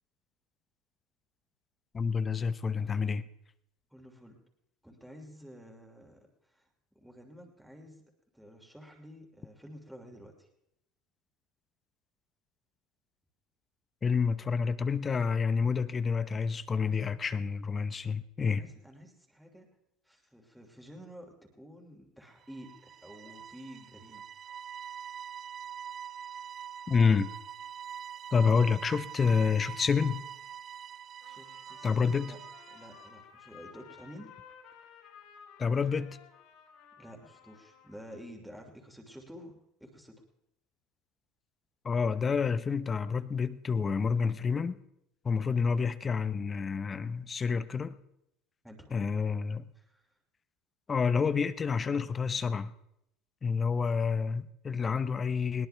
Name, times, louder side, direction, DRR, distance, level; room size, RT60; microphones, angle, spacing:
voice 1, 1.9-3.2 14.0-18.6 26.9-27.3 28.3-30.2 31.8-32.3 35.6-36.2 41.8-44.8 45.2-47.9 48.9-49.7 50.9-52.7 53.4-55.7, left 5 dB, 25° left, 0.8 m, -28 dB
voice 2, 3.9-4.4 4.8-6.7 6.9-8.0 8.3-10.5 18.5-19.7 20.0-24.2 31.2-32.4 32.7-34.3 37.0-40.1 48.6-48.9 49.7-50.1, equal, ahead, 2.9 m, -50 dB
sound 1, 22.4-33.2, right 8 dB, 40° right, 0.5 m, -44 dB
Trumpet, 31.2-38.3, left 7 dB, 65° left, 6.9 m, -55 dB
20.5 x 18.0 x 3.4 m
supercardioid pair, 100°, 0 cm